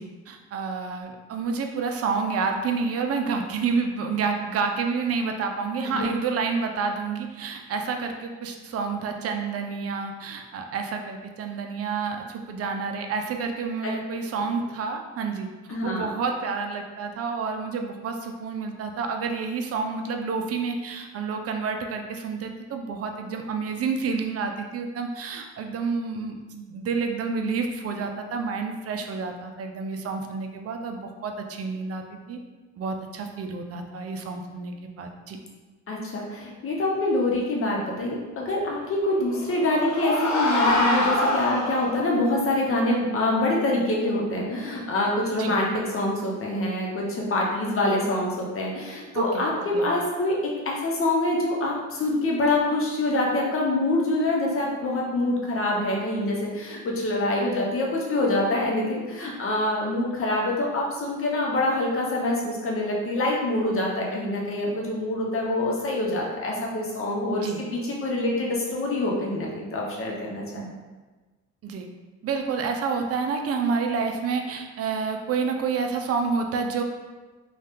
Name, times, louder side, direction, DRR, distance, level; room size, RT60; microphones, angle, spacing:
voice 1, 0.0-32.4 32.8-35.4 45.4-45.6 49.1-49.9 67.3-67.6 70.6-70.7 71.6-71.9 72.2-76.8, right 5 dB, 50° right, 4 dB, 0.5 m, -29 dB
voice 2, 15.7-16.1 35.9-70.7, left 2 dB, 45° left, -2 dB, 0.8 m, -25 dB
sound 1, 39.2-42.1, left 1 dB, 75° left, 0.8 m, -25 dB
2.7 x 2.4 x 3.5 m, 1.3 s
cardioid pair, 90°, 30 cm